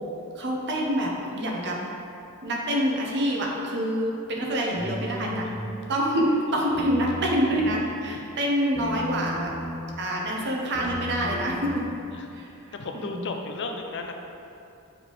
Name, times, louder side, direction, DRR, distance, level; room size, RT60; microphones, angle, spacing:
voice 1, 0.3-1.8 2.4-5.5 5.9-9.5 10.0-11.9 12.3-13.3, equal, 55° right, -1 dB, 0.9 m, -26 dB
sound 1, 4.8-5.7 6.7-7.8 8.8-9.7 10.7-11.7, left 1 dB, ahead, 1.0 m, -35 dB
voice 2, 12.1-14.1, left 3 dB, 55° left, 4 dB, 0.5 m, -35 dB
7.0 x 3.5 x 4.7 m, 2.7 s
head